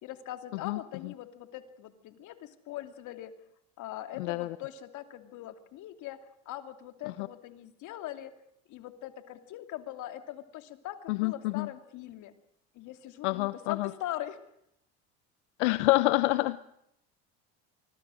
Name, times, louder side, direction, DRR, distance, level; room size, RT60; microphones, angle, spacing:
voice 1, 0.0-3.3 3.8-6.2 6.5-8.3 8.7-12.3 12.7-14.4, left 13 dB, 60° left, 8 dB, 2.8 m, -41 dB
voice 2, 4.2-4.6 7.0-7.3 11.1-11.7 13.2-13.9 15.6-16.6, left 20 dB, 85° left, 14 dB, 0.9 m, -27 dB
25.5 x 21.0 x 6.4 m, 0.77 s
supercardioid pair, 100°, 33 cm